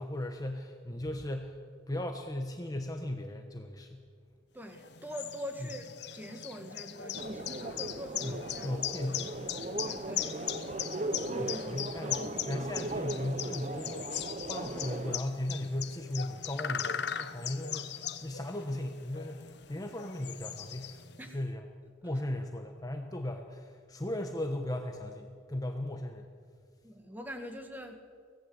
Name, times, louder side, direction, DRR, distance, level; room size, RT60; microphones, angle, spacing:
voice 1, 0.0-1.6 1.9-4.0 8.2-9.4 11.4-21.0 21.3-21.6 22.0-26.3, left 1 dB, 20° left, 4 dB, 1.1 m, -37 dB
voice 2, 4.5-5.9 6.1-8.7 9.8-10.4 11.2-12.4 21.2-21.5 26.8-28.0, equal, 10° right, 5 dB, 1.9 m, -44 dB
sound 1, 4.7-21.3, left 9 dB, 55° left, 0.9 m, -39 dB
sound 2, 7.1-15.2, right 2 dB, 35° right, 0.8 m, -38 dB
24.5 x 17.5 x 8.0 m, 2.1 s
head